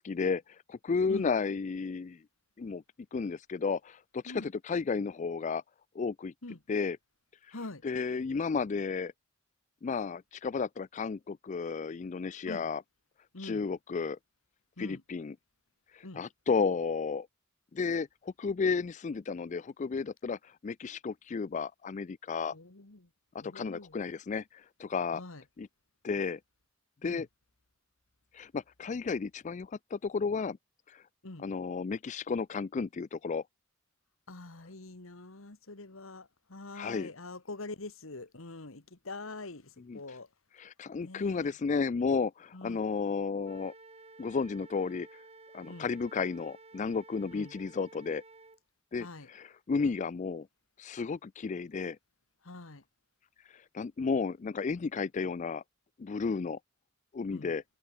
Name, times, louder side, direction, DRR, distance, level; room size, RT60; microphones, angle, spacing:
voice 1, 0.0-2.2 2.6-2.8 3.1-5.6 6.0-6.3 6.7-7.0 7.4-7.6 7.8-9.1 9.8-12.8 13.4-14.2 14.8-15.3 15.9-17.3 17.7-22.5 23.3-25.2 25.6-25.7 26.0-26.4 27.0-27.3 28.3-30.6 30.9-31.0 31.4-33.4 36.7-37.1 39.9-40.2 40.5-43.7 44.2-45.2 45.5-48.2 48.9-50.5 50.8-52.0 53.5-55.6 56.0-56.6 57.1-57.6, left 5 dB, 35° left, 0.4 m, -33 dB
voice 2, 7.5-7.8 12.5-12.7 13.3-13.6 14.8-15.0 16.0-16.2 22.5-23.1 23.4-24.0 25.1-25.4 27.0-27.2 31.2-31.5 34.3-40.3 41.0-41.5 42.5-42.8 45.7-45.9 47.3-47.5 49.0-49.3 52.4-52.8 57.3-57.5, left 2 dB, 75° left, 1.9 m, -44 dB
Wind instrument woodwind instrument, 43.4-48.6, right 3 dB, 30° right, 4.1 m, -54 dB
head